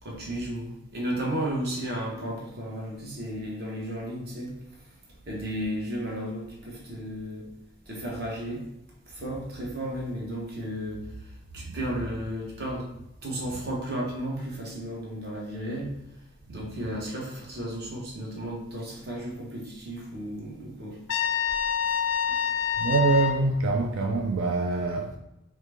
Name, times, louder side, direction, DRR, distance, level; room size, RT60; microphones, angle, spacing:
voice 1, 0.0-4.5 5.2-7.5 7.9-8.6 9.1-12.9 13.2-15.9 16.5-21.0 21.9-22.0 22.3-22.4, right 1 dB, 50° right, 1.1 m, -34 dB
Trumpet, 21.1-23.4, left 8 dB, 75° left, 0.3 m, -26 dB
voice 2, 22.8-25.2, right 3 dB, 65° right, 0.4 m, -25 dB
4.7 x 2.2 x 3.3 m
head